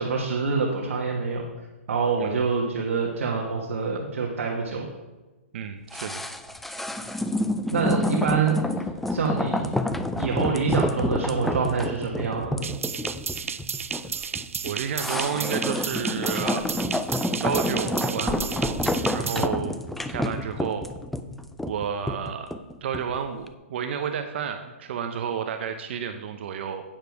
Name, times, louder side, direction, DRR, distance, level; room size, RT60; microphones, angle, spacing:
voice 1, 0.0-1.4 1.9-4.9 7.7-8.6 9.1-9.7 10.2-12.7, right 5 dB, 75° right, -1 dB, 1.4 m, -26 dB
voice 2, 5.5-6.2 14.6-16.6 17.4-18.9 19.1-19.8 20.1-20.8 21.6-26.8, right 7 dB, 55° right, 7 dB, 0.7 m, -31 dB
sound 1, 5.9-23.2 23.5-23.6, left 1 dB, 5° left, 0.3 m, -28 dB
sound 2, 12.6-19.5, right 6 dB, 90° right, 0.4 m, -33 dB
8.9 x 6.7 x 4.7 m, 1.2 s
hypercardioid pair, 135°, 7 cm